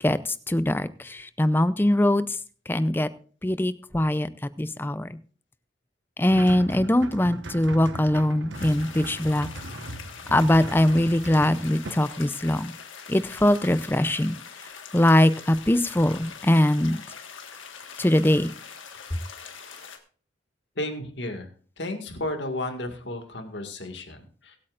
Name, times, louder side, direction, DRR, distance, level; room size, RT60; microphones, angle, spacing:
voice 1, 0.0-2.4 2.7-3.1 3.4-4.3 4.6-5.2 6.2-9.5 10.3-12.7 13.1-14.4 14.9-17.0 18.0-18.5, left 1 dB, 10° left, 14 dB, 0.5 m, -22 dB
sound 1, 6.3-11.9, right 1 dB, 70° right, 1.3 m, -38 dB
sound 2, 8.5-20.0, left 6 dB, 90° left, 1.7 m, -43 dB
voice 2, 20.8-21.5 21.8-24.6, left 1 dB, 65° left, 4 dB, 2.0 m, -33 dB
23.0 x 8.6 x 2.5 m, 0.42 s
head